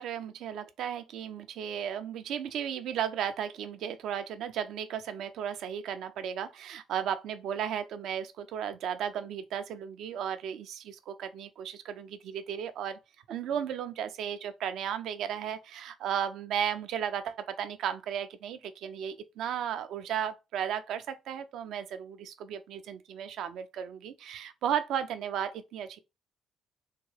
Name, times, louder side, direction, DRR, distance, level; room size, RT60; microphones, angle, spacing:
voice 1, 0.0-13.0 13.3-26.0, right 9 dB, 70° right, 0.4 m, -35 dB
3.6 x 2.2 x 3.2 m
hypercardioid pair, 45°, 0 cm